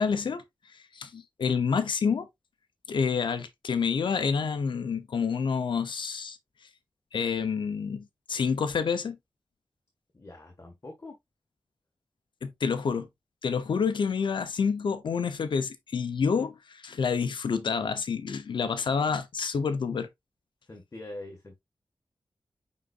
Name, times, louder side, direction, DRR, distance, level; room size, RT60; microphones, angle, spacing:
voice 1, 0.0-2.3 2.9-6.4 7.1-9.2 12.4-13.1 13.4-20.1, left 6 dB, 85° left, 0.9 m, -28 dB
voice 2, 10.1-11.2 20.7-21.6, left 1 dB, 35° left, 1.8 m, -44 dB
9.2 x 4.2 x 2.5 m
wide cardioid pair, 90°, 8 cm